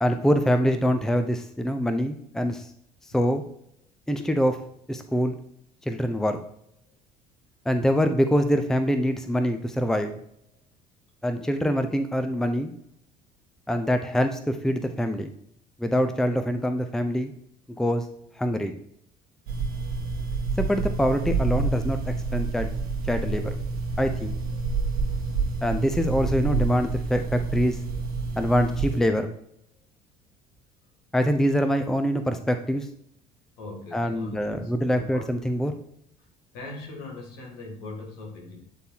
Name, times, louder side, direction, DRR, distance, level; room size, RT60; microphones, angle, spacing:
voice 1, 0.0-2.7 3.1-3.4 4.1-4.6 4.9-5.4 5.9-6.4 7.7-10.1 11.2-12.7 13.7-15.3 15.8-17.3 17.8-18.0 18.4-18.7 20.6-22.7 23.1-23.6 24.0-24.4 25.6-27.8 28.4-29.3 31.1-32.9 33.9-35.7, equal, ahead, 7 dB, 0.6 m, -24 dB
sound 1, 19.5-29.0, right 4 dB, 75° right, 1.1 m, -28 dB
voice 2, 33.6-35.2 36.2-36.3 36.5-38.7, left 2 dB, 65° left, 0 dB, 2.0 m, -40 dB
9.1 x 4.0 x 2.9 m, 0.70 s
figure-of-eight pair, 55°, 19 cm